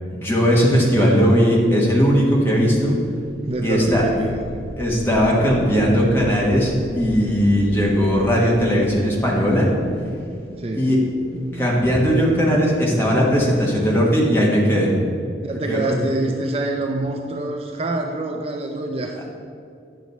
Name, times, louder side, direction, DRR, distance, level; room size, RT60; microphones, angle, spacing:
voice 1, 0.1-3.0 3.6-4.0 4.8-9.7 10.8-11.0 11.5-14.9 15.7-16.0, equal, 15° left, -4 dB, 1.3 m, -18 dB
sound 1, 1.4-14.7, right 1 dB, 60° right, 1.0 m, -35 dB
voice 2, 3.4-4.6 10.6-10.9 15.4-19.3, right 2 dB, 35° right, 3 dB, 0.4 m, -26 dB
9.1 x 6.1 x 4.1 m, 2.4 s
head